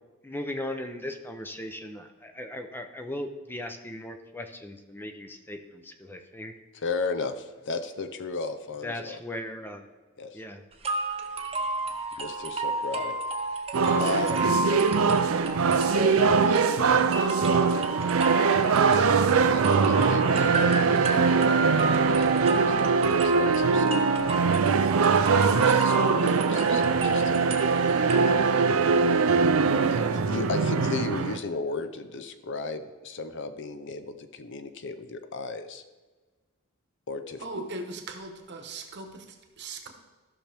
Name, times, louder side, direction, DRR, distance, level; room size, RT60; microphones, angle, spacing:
voice 1, 0.2-6.5 8.8-9.9 10.3-10.6, left 1 dB, 10° left, 6 dB, 0.6 m, -38 dB
voice 2, 6.7-9.2 10.2-10.4 12.2-13.1 14.0-14.4 14.7-15.1 15.8-17.8 18.9-24.0 25.5-27.6 29.7-35.8 37.1-37.6, left 3 dB, 60° left, 9 dB, 0.7 m, -35 dB
sound 1, 10.8-28.8, right 3 dB, 30° right, 0.8 m, -32 dB
sound 2, 13.7-31.4, right 5 dB, 70° right, 0.5 m, -22 dB
voice 3, 37.4-39.9, right 2 dB, 55° right, 5 dB, 1.1 m, -39 dB
14.0 x 5.9 x 3.4 m, 1.3 s
head